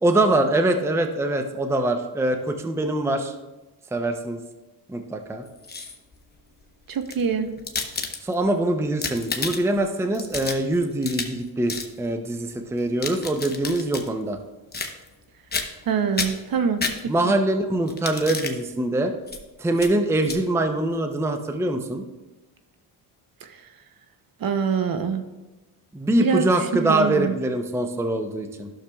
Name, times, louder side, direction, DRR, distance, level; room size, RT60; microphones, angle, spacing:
voice 1, 0.0-3.3 3.9-4.4 4.9-5.5 8.2-14.4 17.1-19.1 19.6-22.0 25.9-28.7, right 1 dB, 5° right, 6 dB, 0.6 m, -23 dB
sound 1, 5.5-6.2 6.9-8.5 8.9-9.8 10.1-11.4 11.7-11.9 12.8-14.1 14.7-15.2 15.5-15.9 16.2-17.4 17.9-18.6 19.3-19.4 19.8-19.9 20.2-20.4, left 4 dB, 20° left, 0.9 m, -31 dB
voice 2, 6.9-7.5 15.9-16.8 24.4-25.2 26.2-26.5 26.8-27.3, right 6 dB, 45° right, 8 dB, 0.8 m, -24 dB
12.0 x 6.6 x 2.3 m, 1.1 s
supercardioid pair, 75°, 49 cm